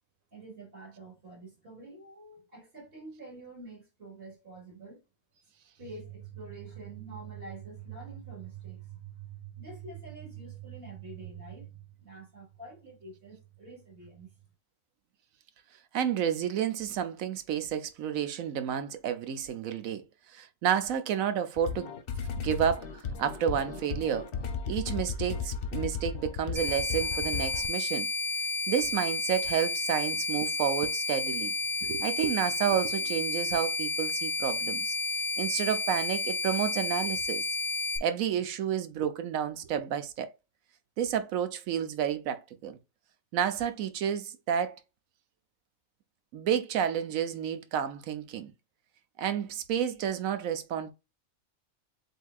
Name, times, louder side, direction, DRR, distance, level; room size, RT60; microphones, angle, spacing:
voice 1, 0.3-5.0 5.8-14.3, right 5 dB, 45° right, 3.3 m, -45 dB
voice 2, 15.9-20.0 20.3-21.9 22.4-24.3 24.7-28.1 28.7-31.5 31.8-34.9 35.4-37.4 38.0-40.3 41.0-42.8 43.3-44.8 46.3-48.5 49.2-50.9, right 9 dB, 85° right, 1.1 m, -30 dB
sound 1, 21.6-27.7, left 6 dB, 55° left, 0.8 m, -35 dB
sound 2, 26.6-38.0, left 3 dB, ahead, 0.6 m, -31 dB
7.8 x 2.8 x 2.4 m
omnidirectional pair, 1.4 m